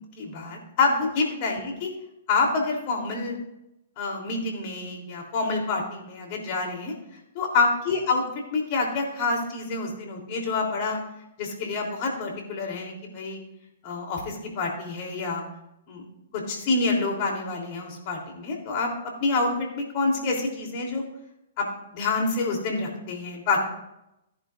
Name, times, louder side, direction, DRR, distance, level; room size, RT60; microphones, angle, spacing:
voice 1, 0.2-1.9 2.3-3.4 4.0-6.9 7.4-8.2 8.5-11.0 11.4-13.4 13.8-15.4 15.9-16.1 16.3-18.9 19.2-21.0 21.6-21.7 21.9-23.6, left 3 dB, 45° left, 0 dB, 3.3 m, -27 dB
14.5 x 11.0 x 2.6 m, 0.85 s
hypercardioid pair, 130°, 0 cm